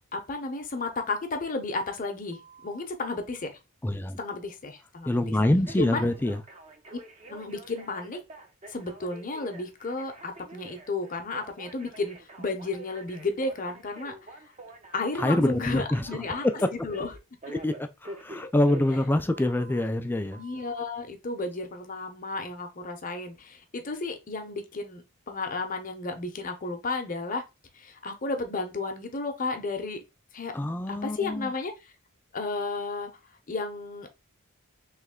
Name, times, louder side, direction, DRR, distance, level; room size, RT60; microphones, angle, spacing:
voice 1, 0.1-3.5 4.2-5.2 5.8-6.1 7.3-8.2 8.7-14.1 14.9-16.5 16.7-17.1 20.4-27.4 27.8-30.0 30.3-30.5 30.9-31.9 32.3-33.1 33.5-34.1, left 3 dB, 40° left, 0.8 m, -33 dB
Telephone, 2.3-2.9 5.6-19.8 20.3-20.8, right 2 dB, 30° right, 0.6 m, -47 dB
voice 2, 3.8-4.2 5.1-6.4 15.2-16.1 16.4-16.5 17.5-20.4 30.5-31.5, left 1 dB, 10° left, 0.3 m, -25 dB
3.3 x 3.2 x 3.6 m
head